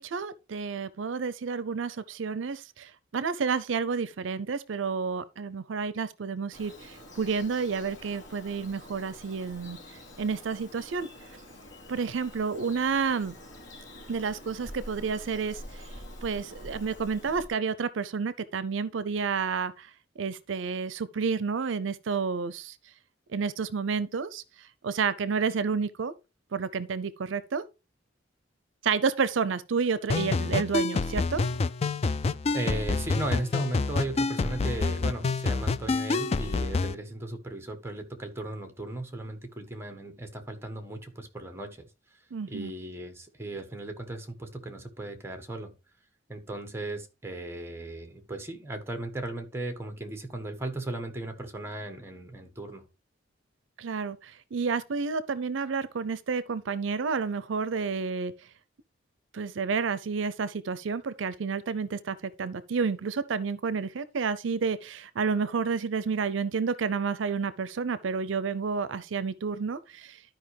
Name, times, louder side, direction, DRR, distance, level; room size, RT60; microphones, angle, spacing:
voice 1, 0.0-9.8 10.2-11.1 11.9-13.4 14.1-15.9 16.2-19.9 20.2-22.8 23.3-26.1 26.5-27.6 28.8-31.4 42.3-42.7 53.8-58.3 59.3-70.2, right 5 dB, 80° right, 0.5 m, -30 dB
Bird vocalization bird call bird song, 6.5-17.5, left 1 dB, 80° left, 2.7 m, -46 dB
sound 1, 30.1-36.9, left 3 dB, 35° left, 0.3 m, -28 dB
voice 2, 32.5-41.9 42.5-45.7 46.3-52.8, right 2 dB, 15° right, 1.4 m, -36 dB
12.5 x 5.1 x 3.3 m
head